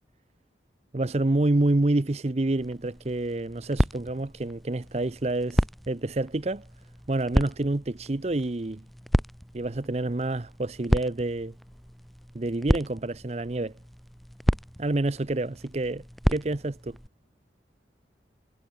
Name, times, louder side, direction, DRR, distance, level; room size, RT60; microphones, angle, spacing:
voice 1, 0.9-6.6 7.1-8.8 9.5-11.5 12.3-13.7 14.8-16.0 16.3-17.0, right 2 dB, 35° right, 0.7 m, -28 dB
sound 1, 2.6-17.1, equal, ahead, 0.4 m, -31 dB
head